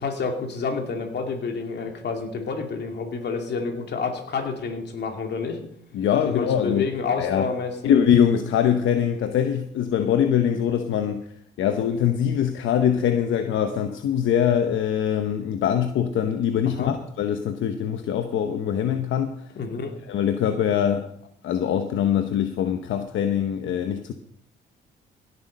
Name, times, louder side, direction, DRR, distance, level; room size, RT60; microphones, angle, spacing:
voice 1, 0.0-5.6 6.3-7.7 16.7-16.9 19.5-19.9, left 4 dB, 60° left, 4 dB, 2.6 m, -29 dB
voice 2, 5.9-6.9 7.2-7.5 7.8-11.2 11.6-19.4 20.1-21.1 21.4-24.1, left 9 dB, 75° left, 7 dB, 1.0 m, -23 dB
17.0 x 8.2 x 5.3 m, 0.71 s
cardioid pair, 90°, 20 cm